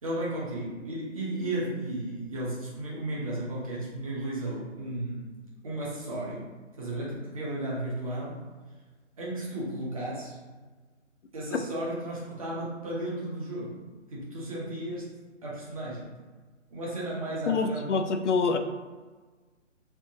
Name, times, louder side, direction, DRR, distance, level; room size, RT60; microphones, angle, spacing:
voice 1, 0.0-5.3 5.6-6.5 6.8-8.4 9.2-10.4 11.3-13.8 14.1-15.1 15.4-16.1 16.7-17.9, right 1 dB, 30° right, -6 dB, 0.9 m, -34 dB
voice 2, 17.5-18.6, left 4 dB, 70° left, 6 dB, 0.5 m, -26 dB
3.5 x 2.8 x 2.8 m, 1.3 s
hypercardioid pair, 170°, 37 cm